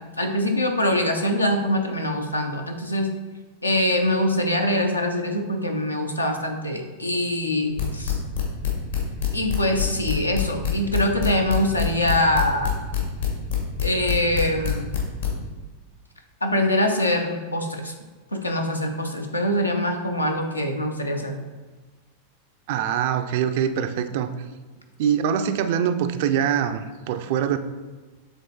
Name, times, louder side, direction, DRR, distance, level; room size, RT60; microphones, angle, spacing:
voice 1, 0.2-3.1 3.6-8.2 9.3-12.7 13.8-14.9 16.4-17.9 18.3-21.4, left 1 dB, 85° left, 3 dB, 0.7 m, -24 dB
sound 1, 7.8-15.3, left 10 dB, 70° left, 1.5 m, -25 dB
voice 2, 22.7-24.3 25.0-27.6, right 8 dB, 50° right, 9 dB, 0.4 m, -23 dB
7.1 x 3.7 x 3.7 m, 1.3 s
figure-of-eight pair, 90°, 0 cm